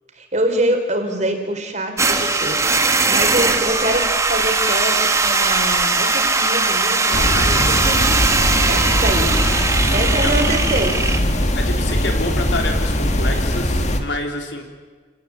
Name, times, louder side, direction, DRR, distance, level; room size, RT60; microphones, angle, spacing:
voice 1, 0.2-8.2 8.7-9.4 9.8-11.0, right 1 dB, 40° right, 5 dB, 3.9 m, -24 dB
sound 1, 2.0-11.2, right 3 dB, 15° right, 1.5 m, -19 dB
sound 2, 7.1-14.0, left 1 dB, 40° left, 2.0 m, -20 dB
voice 2, 7.3-7.8 10.1-10.3 11.5-14.6, left 2 dB, 75° left, 4 dB, 3.6 m, -28 dB
28.5 x 18.0 x 8.4 m, 1.5 s
head